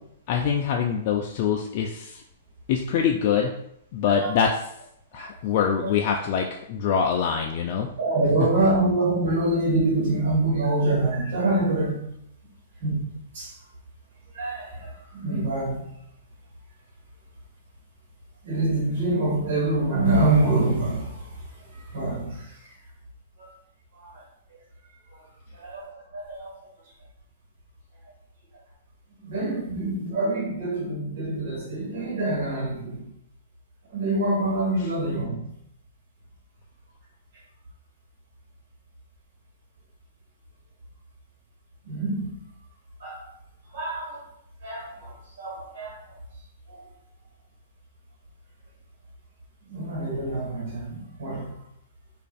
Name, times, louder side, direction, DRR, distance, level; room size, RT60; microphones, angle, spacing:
voice 1, 0.3-2.2 2.7-3.5 3.9-4.7 5.1-7.9 8.4-8.5 34.8-34.9, left 7 dB, 50° left, 1 dB, 0.3 m, -24 dB
voice 2, 8.0-12.1 12.8-13.5 14.3-15.8 18.4-21.2 21.9-22.4 23.4-23.5 24.0-24.1 25.6-26.5 29.2-33.1 33.9-35.5 41.8-42.3 43.0-43.2 43.7-44.2 44.6-46.0 46.7-46.8 49.7-51.5, right 2 dB, 70° right, -3 dB, 1.3 m, -25 dB
4.9 x 2.5 x 2.3 m, 0.74 s
hypercardioid pair, 125°, 0 cm